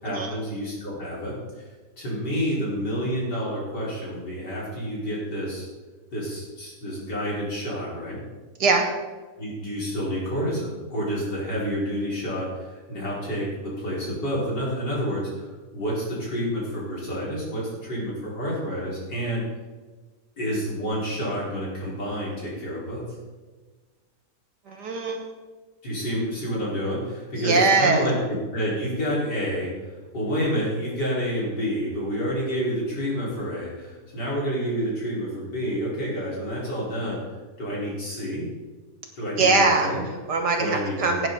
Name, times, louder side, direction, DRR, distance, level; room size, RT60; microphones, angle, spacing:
voice 1, 0.0-1.6 2.0-5.7 6.1-8.2 9.4-19.4 20.4-23.0 25.8-29.7 30.1-37.2 37.6-38.5 39.1-40.0 40.6-41.3, equal, 90° left, -6 dB, 5.2 m, -29 dB
voice 2, 24.7-25.2 27.4-28.1 39.4-41.3, right 3 dB, 80° right, 2 dB, 2.6 m, -22 dB
18.0 x 9.1 x 4.0 m, 1.3 s
omnidirectional pair, 1.8 m